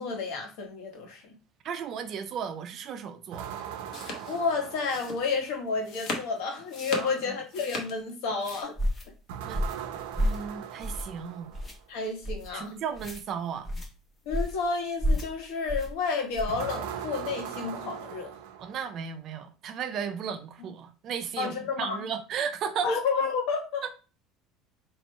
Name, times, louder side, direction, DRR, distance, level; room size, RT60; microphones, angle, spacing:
voice 1, 0.0-1.3 4.2-8.8 11.9-12.8 14.2-18.4 21.4-22.0 22.8-23.8, left 4 dB, 60° left, 1.3 m, -31 dB
voice 2, 1.6-3.5 6.9-7.4 9.5-9.6 10.2-11.5 12.5-13.7 18.6-22.9 23.8-23.9, right 7 dB, 30° right, 0.4 m, -35 dB
sound 1, 3.3-5.7 9.3-11.8 16.5-19.1, right 9 dB, 75° right, 0.6 m, -40 dB
sound 2, 3.5-8.6, left 3 dB, 40° left, 0.9 m, -38 dB
sound 3, 8.8-9.1 9.5-9.8 10.1-10.5 10.8-11.2 11.5-11.7 12.2-12.5 12.9-13.2 13.6-13.9 14.3-14.6 15.0-15.3 15.7-15.9 16.3-16.6, equal, 15° left, 0.7 m, -29 dB
3.1 x 2.9 x 4.3 m
cardioid pair, 180°, 0 cm